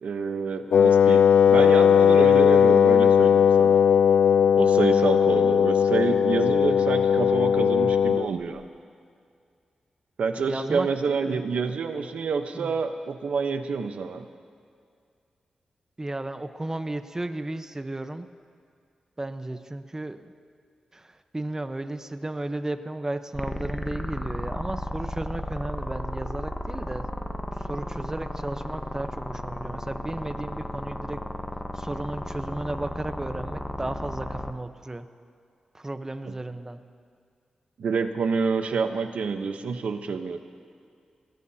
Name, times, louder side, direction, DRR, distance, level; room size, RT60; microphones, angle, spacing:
voice 1, 0.0-3.8 4.5-8.6 10.2-14.3 37.8-40.4, right 5 dB, 80° right, 7 dB, 1.0 m, -28 dB
Wind instrument woodwind instrument, 0.7-8.3, left 7 dB, 85° left, 0.4 m, -18 dB
voice 2, 10.4-11.4 12.5-12.8 16.0-18.3 19.2-20.3 20.9-27.1 27.6-31.2 31.7-35.1 35.7-36.8, right 2 dB, 25° right, 9 dB, 1.0 m, -34 dB
sound 1, 23.3-34.5, left 1 dB, 15° left, 1.0 m, -33 dB
27.0 x 17.5 x 2.9 m, 2.3 s
cardioid pair, 55°, 2 cm